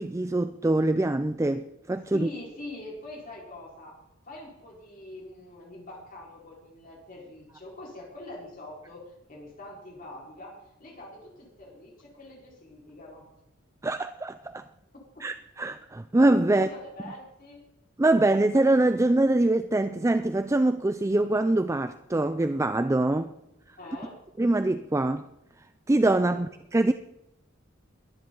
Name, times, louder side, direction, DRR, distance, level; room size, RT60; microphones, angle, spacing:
voice 1, 0.0-2.3 13.8-14.7 15.2-16.7 18.0-23.3 24.4-25.3 25.9-26.9, right 2 dB, 15° right, 0.4 m, -24 dB
voice 2, 2.1-13.3 16.5-17.7 23.4-23.5 23.8-24.2 26.3-26.5, left 1 dB, 45° left, 4.7 m, -44 dB
22.5 x 10.5 x 3.9 m
head